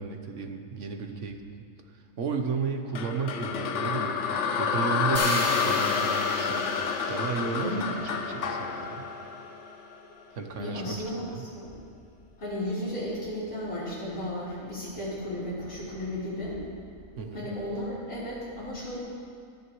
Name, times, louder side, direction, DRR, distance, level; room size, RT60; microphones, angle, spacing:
voice 1, 0.0-1.4 2.2-6.7 7.1-9.1 10.3-11.4 17.2-17.5, right 5 dB, 60° right, 5 dB, 1.2 m, -33 dB
sound 1, 3.0-10.1, left 6 dB, 60° left, 1.0 m, -29 dB
sound 2, 5.1-9.2, equal, 10° left, 1.3 m, -36 dB
voice 2, 7.6-7.9 10.6-11.2 11.5-11.7 12.4-16.6 17.3-19.0, left 1 dB, 80° left, -9 dB, 4.5 m, -34 dB
24.5 x 9.6 x 3.1 m, 2.2 s
omnidirectional pair, 1.5 m